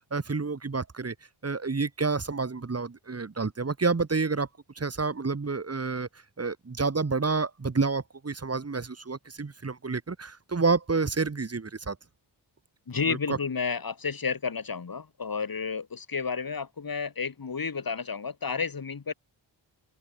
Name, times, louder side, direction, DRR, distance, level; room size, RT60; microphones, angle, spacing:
voice 1, 0.1-1.1 1.4-4.5 4.8-6.1 6.4-12.0 13.1-13.4, right 4 dB, 35° right, 1.7 m, -29 dB
voice 2, 12.9-19.1, left 5 dB, 50° left, 2.6 m, -31 dB
open air
cardioid pair, 45°, 45 cm